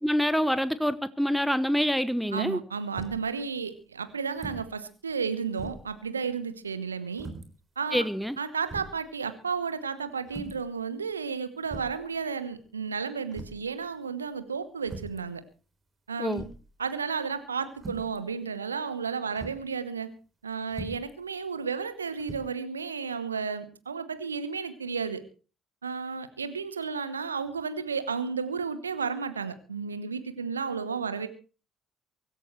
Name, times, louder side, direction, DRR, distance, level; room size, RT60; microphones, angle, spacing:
voice 1, 0.0-2.6 7.9-8.4 16.2-16.5, equal, ahead, 15 dB, 1.0 m, -26 dB
voice 2, 2.3-7.3 7.8-8.1 8.4-15.4 16.1-16.5 16.8-20.1 20.4-25.2 25.8-31.3, right 5 dB, 85° right, 13 dB, 1.1 m, -33 dB
sound 1, 3.0-3.3 4.3-4.7 5.1-5.2 5.6-6.0 7.2-7.5 8.2-8.3 8.7-9.0 10.3-10.7 11.6-12.0 13.3-13.7 14.8-15.2 16.3-16.7 17.7-18.2 19.4-19.6 20.7-21.1 22.2-22.4, right 3 dB, 30° right, 3.6 m, -41 dB
24.0 x 13.5 x 3.2 m, 0.36 s
figure-of-eight pair, 50°, 0 cm